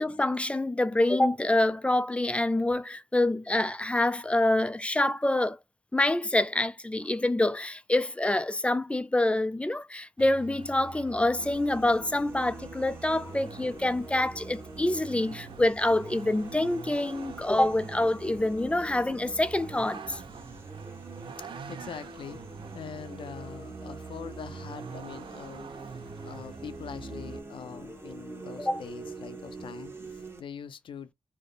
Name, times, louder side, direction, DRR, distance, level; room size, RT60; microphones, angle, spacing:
voice 1, 0.0-5.6 5.9-20.2 28.6-28.8, left 1 dB, 15° left, 0.3 m, -26 dB
Vehicle, 10.2-27.4, right 6 dB, 70° right, 0.5 m, -45 dB
sound 1, 11.4-30.4, right 2 dB, 25° right, 1.0 m, -45 dB
voice 2, 21.4-22.4 22.7-25.7 26.2-31.1, left 7 dB, 75° left, 0.6 m, -43 dB
3.4 x 2.1 x 3.9 m
cardioid pair, 85°, 9 cm